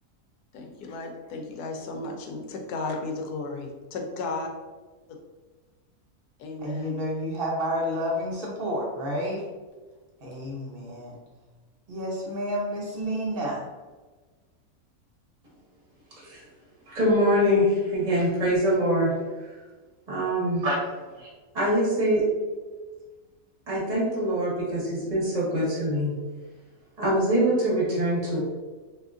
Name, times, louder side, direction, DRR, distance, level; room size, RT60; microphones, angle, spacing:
voice 1, 0.5-4.5 6.4-7.0, left 3 dB, 85° left, 3 dB, 1.1 m, -34 dB
voice 2, 6.6-9.4 10.2-11.2 11.9-13.6, equal, 55° right, -3 dB, 0.7 m, -30 dB
voice 3, 16.9-19.1 20.1-20.8 21.2-21.3 21.5-22.2 23.7-26.1 27.0-28.4, equal, 30° right, -6 dB, 1.0 m, -24 dB
3.6 x 2.8 x 2.4 m, 1.3 s
omnidirectional pair, 1.6 m